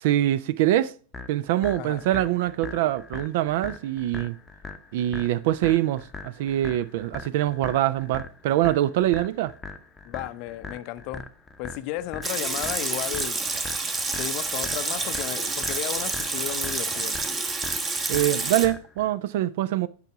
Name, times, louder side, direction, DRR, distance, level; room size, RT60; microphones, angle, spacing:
voice 1, 0.0-0.9 1.3-4.4 4.9-9.5 18.1-19.9, right 13 dB, 50° right, 0.4 m, -24 dB
sound 1, 1.1-19.1, left 3 dB, 15° left, 0.8 m, -41 dB
voice 2, 10.0-11.3 11.6-13.4 14.2-17.2, left 13 dB, 45° left, 0.6 m, -34 dB
Water tap faucet / Sink (filling or washing) / Liquid, 12.2-18.7, right 3 dB, 20° right, 1.1 m, -28 dB
9.1 x 5.6 x 4.7 m
figure-of-eight pair, 90°, 0 cm